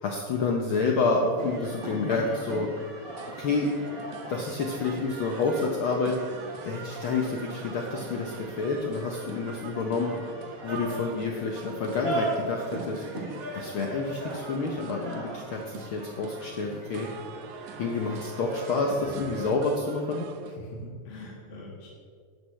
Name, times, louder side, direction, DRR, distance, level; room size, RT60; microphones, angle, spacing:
voice 1, 0.0-2.7 3.4-3.7 4.3-6.2 6.6-10.2 10.6-13.1 13.5-17.1 17.8-20.3, left 3 dB, 80° left, 1 dB, 1.2 m, -28 dB
sound 1, 1.4-19.5, right 2 dB, 40° right, 2.5 m, -39 dB
sound 2, 3.1-20.6, right 8 dB, 80° right, 1.7 m, -44 dB
voice 2, 19.0-19.3 20.4-21.9, left 1 dB, 45° left, -4 dB, 2.1 m, -42 dB
12.5 x 11.5 x 3.2 m, 2.1 s
omnidirectional pair, 3.5 m